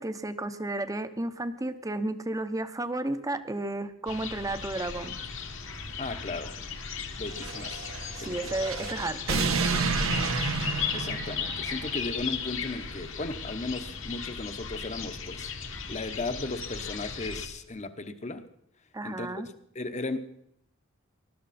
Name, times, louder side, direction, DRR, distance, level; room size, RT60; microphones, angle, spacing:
voice 1, 0.0-5.2 8.2-9.4 18.9-19.5, right 2 dB, 15° right, 11 dB, 0.8 m, -33 dB
sound 1, 4.1-17.5, left 6 dB, 65° left, 1.7 m, -36 dB
voice 2, 6.0-6.6 7.2-7.9 8.2-8.5 10.9-15.5 15.9-18.5 19.0-19.4 19.7-20.2, left 2 dB, 35° left, 9 dB, 1.0 m, -36 dB
sound 2, 7.3-12.1, right 4 dB, 80° right, 1.2 m, -30 dB
20.0 x 12.5 x 4.2 m, 0.73 s
head